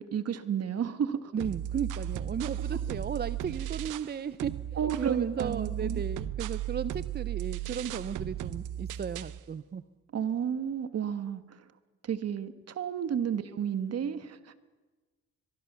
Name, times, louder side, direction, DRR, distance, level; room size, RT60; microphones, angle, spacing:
voice 1, 0.0-1.3 4.8-6.0 10.1-11.6 12.0-14.6, right 8 dB, 55° right, 11 dB, 1.7 m, -32 dB
voice 2, 1.3-9.8, right 7 dB, 35° right, 14 dB, 0.7 m, -35 dB
sound 1, 1.4-4.1 4.4-9.4, right 11 dB, 85° right, 0.9 m, -35 dB
23.5 x 23.0 x 6.9 m, 1.3 s
cardioid pair, 90°, 30 cm